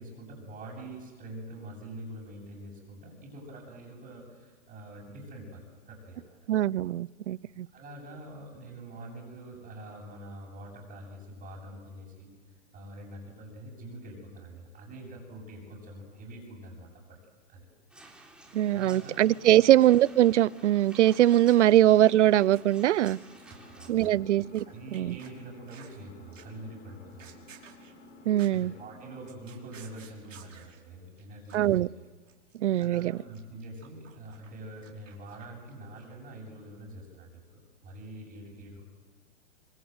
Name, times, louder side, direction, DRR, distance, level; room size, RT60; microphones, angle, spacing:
voice 1, 0.0-6.4 7.7-12.3 12.7-17.2 17.5-17.7 18.7-19.2 19.5-19.7 23.5-24.3 24.7-27.5 28.5-32.0 32.8-38.8, right 1 dB, 20° right, 7.8 m, -45 dB
voice 2, 6.5-7.7 18.5-23.2 23.9-24.6 24.9-25.2 28.3-28.7 31.5-31.9 32.6-33.1, right 13 dB, 65° right, 0.7 m, -22 dB
sound 1, 17.9-23.9, right 2 dB, ahead, 3.4 m, -53 dB
Engine, 19.3-29.3, left 2 dB, 25° left, 5.3 m, -53 dB
sound 2, 21.5-21.7 22.0-24.6 24.9-26.0 26.3-26.6 27.0-28.6 29.0-30.8 31.2-31.3 31.5-31.8 32.1-35.7 36.0-36.1, right 7 dB, 80° right, 5.4 m, -54 dB
26.0 x 25.5 x 8.0 m
hypercardioid pair, 135°, 37 cm